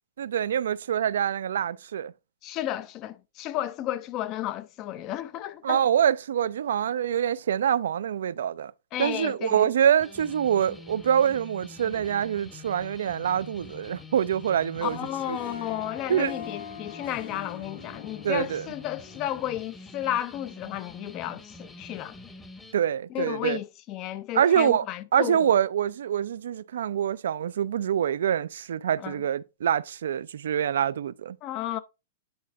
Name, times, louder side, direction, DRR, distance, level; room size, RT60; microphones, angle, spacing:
voice 1, 0.2-2.1 5.6-8.7 9.0-15.0 15.3-15.4 16.1-16.3 18.2-18.7 22.7-23.6 24.3-24.8 25.1-31.4, right 9 dB, 65° right, 0.4 m, -25 dB
voice 2, 2.4-5.8 8.9-9.7 14.8-22.2 23.1-25.5 29.0-29.2 31.4-31.8, left 13 dB, 35° left, 0.6 m, -33 dB
sound 1, 10.0-22.7, left 3 dB, 10° left, 1.0 m, -46 dB
Harp, 14.6-19.8, left 5 dB, 65° left, 2.7 m, -44 dB
9.5 x 4.1 x 3.7 m
figure-of-eight pair, 105°, 0 cm